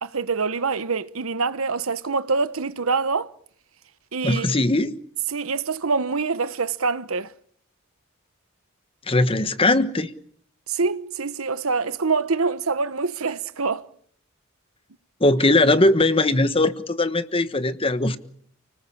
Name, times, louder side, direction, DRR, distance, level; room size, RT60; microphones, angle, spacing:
voice 1, 0.0-3.3 4.1-4.5 5.3-7.3 10.7-13.9, right 4 dB, 85° right, 1.1 m, -25 dB
voice 2, 4.2-5.0 9.1-10.1 15.2-18.2, left 2 dB, 25° left, 1.3 m, -20 dB
30.0 x 19.5 x 8.6 m
head